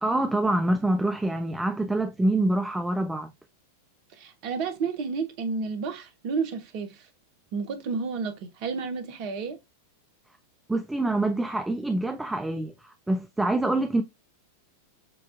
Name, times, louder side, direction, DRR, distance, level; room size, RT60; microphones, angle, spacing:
voice 1, 0.0-3.3 10.7-14.0, right 2 dB, 5° right, 0.3 m, -26 dB
voice 2, 4.1-7.1 7.5-9.6, right 5 dB, 45° right, 0.7 m, -31 dB
6.7 x 2.4 x 2.5 m
figure-of-eight pair, 90°, 0 cm